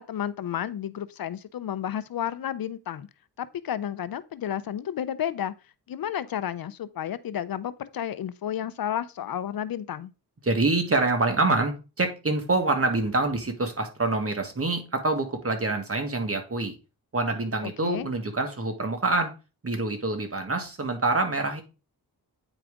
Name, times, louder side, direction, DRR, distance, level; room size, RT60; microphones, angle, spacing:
voice 1, 0.0-3.1 3.4-5.5 5.9-10.1 17.8-18.1, left 10 dB, 65° left, 0.6 m, -32 dB
voice 2, 10.4-16.8 17.1-19.3 19.6-21.6, right 2 dB, 35° right, 1.9 m, -26 dB
9.0 x 4.8 x 3.6 m
cardioid pair, 70°, 38 cm